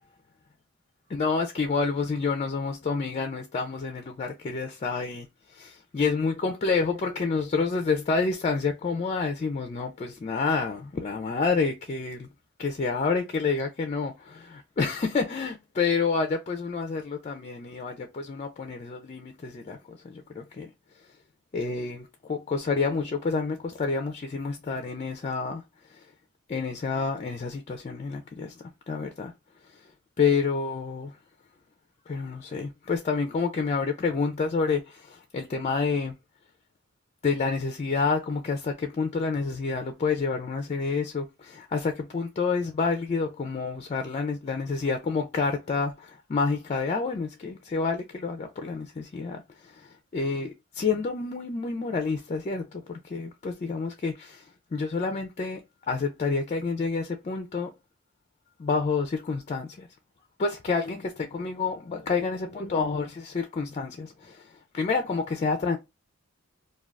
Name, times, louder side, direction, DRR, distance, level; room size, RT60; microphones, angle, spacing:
voice 1, 1.1-12.3 12.6-20.7 21.5-25.6 25.9-26.0 26.5-28.5 28.9-29.3 30.2-31.1 32.1-36.1 37.2-54.4 54.7-55.6 55.9-57.7 58.6-59.9 60.4-65.8, left 4 dB, 30° left, 0.3 m, -29 dB
2.4 x 2.2 x 3.2 m
head